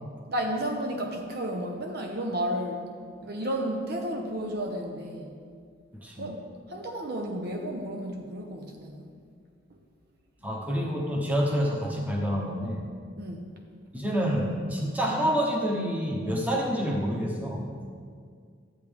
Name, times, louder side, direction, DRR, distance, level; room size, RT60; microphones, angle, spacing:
voice 1, 0.3-2.9 3.2-5.3 6.2-6.4 6.7-9.0 13.2-13.5, right 1 dB, 50° right, 2 dB, 0.8 m, -32 dB
voice 2, 10.4-12.9 13.9-17.7, equal, 10° right, -1 dB, 1.1 m, -28 dB
12.0 x 8.2 x 3.5 m, 2.1 s
head